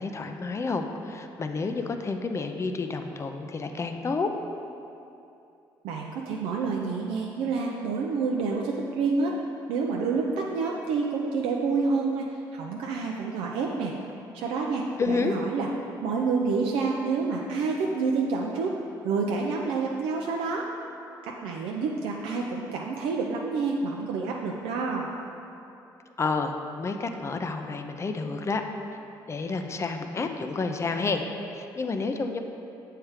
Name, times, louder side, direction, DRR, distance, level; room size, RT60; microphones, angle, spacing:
voice 1, 0.0-4.3 15.0-15.3 26.2-28.6 29.3-31.3 31.5-32.4, left 4 dB, 30° left, 6 dB, 0.5 m, -30 dB
voice 2, 5.8-9.4 9.7-13.9 14.3-15.7 16.0-18.7 19.0-20.6 21.2-25.1, right 4 dB, 85° right, -1 dB, 0.4 m, -28 dB
7.2 x 3.3 x 4.7 m, 2.8 s
supercardioid pair, 75°, 9 cm